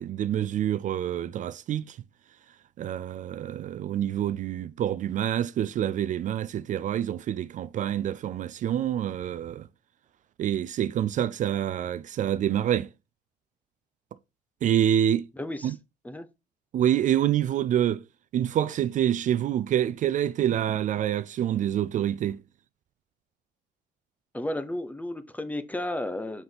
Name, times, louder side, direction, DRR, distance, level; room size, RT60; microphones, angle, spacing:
voice 1, 0.0-2.0 2.8-9.7 10.4-12.9 14.6-15.3 15.6-15.8 16.7-18.0 18.3-22.4, right 10 dB, 50° right, 0.4 m, -27 dB
voice 2, 15.4-15.7 16.0-16.3 24.3-26.4, left 1 dB, 10° left, 0.7 m, -33 dB
5.7 x 5.7 x 3.4 m
cardioid pair, 110°, 17 cm